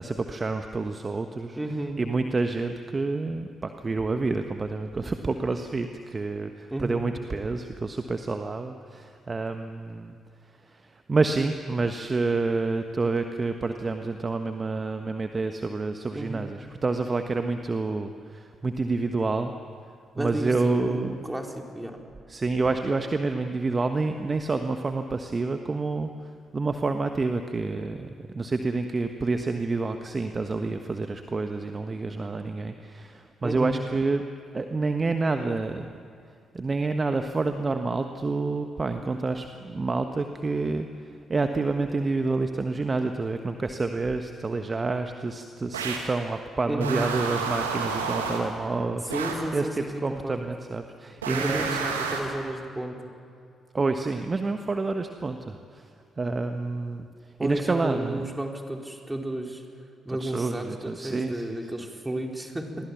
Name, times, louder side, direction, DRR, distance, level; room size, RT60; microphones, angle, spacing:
voice 1, 0.0-1.6 2.0-10.2 10.6-19.5 20.2-21.2 22.3-34.2 34.5-35.9 36.5-49.2 49.5-51.9 53.7-55.9 56.2-58.3 60.1-61.6, right 3 dB, 30° right, 7 dB, 1.4 m, -28 dB
voice 2, 1.6-2.0 6.7-7.1 16.1-16.5 20.1-22.0 33.4-33.8 46.7-47.0 49.1-50.3 51.3-52.9 57.4-59.6 60.0-62.9, right 1 dB, 10° right, 2 dB, 4.3 m, -32 dB
sound 1, 45.7-46.2 46.8-48.6 49.1-49.5 51.2-52.4, right 5 dB, 80° right, 2.0 m, -30 dB
29.0 x 23.0 x 7.2 m, 2.4 s
figure-of-eight pair, 40°, 0 cm